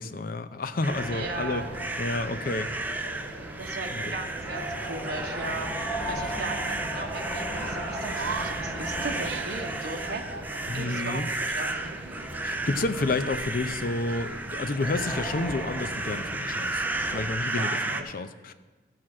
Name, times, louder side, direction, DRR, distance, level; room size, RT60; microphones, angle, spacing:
voice 1, 0.0-1.6 2.0-2.7 3.9-4.1 10.7-11.3 12.4-16.8 17.1-18.5, left 3 dB, 50° left, 10 dB, 0.6 m, -30 dB
sound 1, 0.8-18.0, right 2 dB, 10° right, 0.5 m, -34 dB
sound 2, 0.9-17.2, equal, 10° left, 1.7 m, -38 dB
voice 2, 1.1-1.7 3.6-5.7 6.1-10.2 10.7-11.9 17.5-18.0, right 3 dB, 60° right, 1 dB, 1.0 m, -37 dB
sound 3, 1.5-17.3, right 5 dB, 85° right, 0.5 m, -45 dB
13.5 x 4.7 x 7.5 m, 1.3 s
head